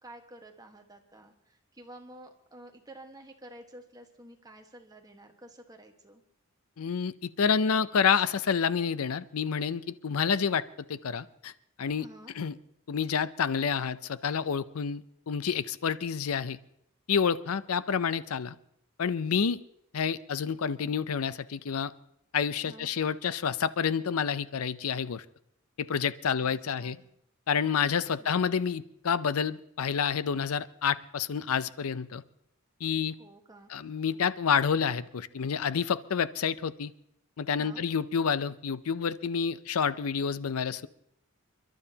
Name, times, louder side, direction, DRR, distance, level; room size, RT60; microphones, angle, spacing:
voice 1, 0.0-6.2 12.0-12.3 22.6-22.9 26.3-27.0 33.2-33.7 37.6-37.8, right 1 dB, 20° right, 3 dB, 1.4 m, -51 dB
voice 2, 6.8-11.5 11.8-12.1 12.4-12.5 12.9-16.6 17.1-18.5 19.0-19.6 19.9-21.9 22.3-25.2 25.8-27.0 27.5-32.2 32.8-33.1 33.7-36.9 37.4-40.9, left 6 dB, 75° left, 16 dB, 0.5 m, -29 dB
29.5 x 12.0 x 2.8 m, 0.75 s
head